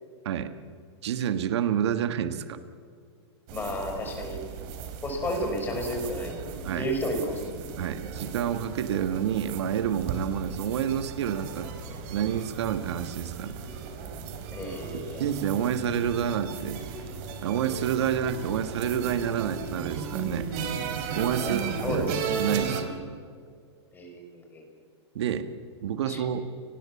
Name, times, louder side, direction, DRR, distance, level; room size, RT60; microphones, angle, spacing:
voice 1, 0.3-0.6 1.0-2.6 6.6-6.9 7.8-11.7 12.1-13.6 14.9-16.8 17.4-20.5 21.2-22.1 22.4-23.0 25.2-25.5 25.8-26.4, right 9 dB, 65° right, 10 dB, 1.7 m, -28 dB
voice 2, 3.5-4.4 5.0-6.4 6.7-7.4 14.5-15.2 21.4-22.1 23.9-24.6 26.1-26.2, equal, 10° left, 3 dB, 5.2 m, -32 dB
sound 1, 3.5-22.8, right 6 dB, 40° right, 3.7 m, -36 dB
30.0 x 20.0 x 7.2 m, 2.2 s
hypercardioid pair, 150°, 15 cm